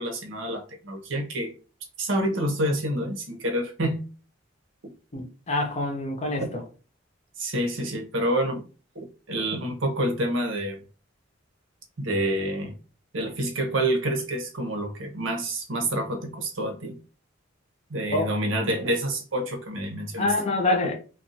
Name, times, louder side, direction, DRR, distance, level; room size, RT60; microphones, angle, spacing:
voice 1, 0.0-1.5 2.0-4.0 7.4-8.6 8.9-10.8 12.0-12.7 13.1-17.0 17.9-20.3, right 1 dB, 70° right, 0.8 m, -28 dB
voice 2, 5.1-6.6 18.1-18.3 20.2-20.9, left 2 dB, 35° left, 0.6 m, -26 dB
2.4 x 2.2 x 4.0 m
head